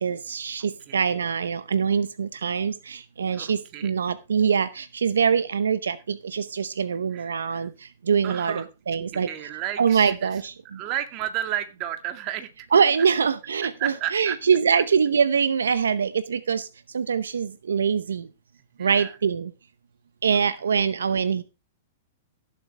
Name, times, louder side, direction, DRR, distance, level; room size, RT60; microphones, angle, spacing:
voice 1, 0.0-7.7 8.1-9.3 9.8-10.5 12.7-16.7 16.9-18.2 18.8-19.5 20.2-21.4, right 6 dB, 90° right, 14 dB, 0.7 m, -23 dB
voice 2, 3.3-3.9 7.1-7.7 8.2-8.7 9.0-10.4 10.7-12.7 13.6-14.4 14.8-14.9 18.8-19.2 20.3-20.4, right 12 dB, 40° right, 8 dB, 1.9 m, -33 dB
17.0 x 7.7 x 3.3 m, 0.28 s
hypercardioid pair, 125°, 0 cm